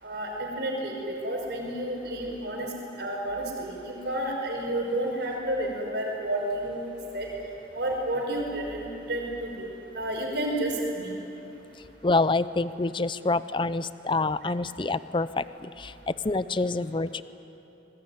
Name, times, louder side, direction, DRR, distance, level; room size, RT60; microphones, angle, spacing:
voice 1, 0.0-2.7 3.0-7.3 7.7-9.7 9.9-11.2, right 1 dB, 60° right, 0 dB, 5.7 m, -31 dB
voice 2, 12.0-17.2, left 3 dB, 25° left, 15 dB, 0.6 m, -27 dB
25.0 x 20.5 x 9.6 m, 3.0 s
head